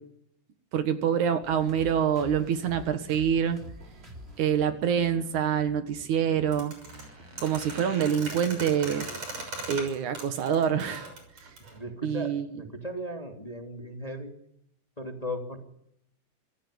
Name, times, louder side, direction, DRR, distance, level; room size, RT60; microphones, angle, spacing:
voice 1, 0.7-3.6 4.4-6.7 7.4-9.1 9.7-11.1 12.0-12.6, right 8 dB, 75° right, 10 dB, 3.0 m, -26 dB
sound 1, 1.4-9.0, equal, 20° right, 3.5 m, -48 dB
sound 2, 6.5-11.8, right 2 dB, 55° right, 7.4 m, -39 dB
voice 2, 11.7-14.3 15.0-15.6, equal, 15° left, 4 dB, 2.5 m, -37 dB
26.0 x 16.5 x 10.0 m, 0.75 s
omnidirectional pair, 3.5 m